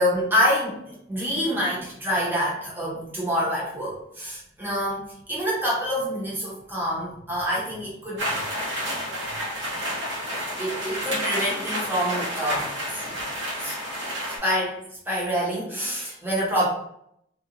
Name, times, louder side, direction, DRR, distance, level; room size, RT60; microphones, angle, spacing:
voice 1, 0.0-5.0 5.3-8.3 9.3-9.4 10.6-13.2 13.6-13.8 14.4-14.8 15.1-16.7, equal, 10° right, -5 dB, 0.8 m, -26 dB
sound 1, 8.2-14.4, equal, 80° right, 1.1 m, -30 dB
2.8 x 2.3 x 2.5 m, 0.73 s
head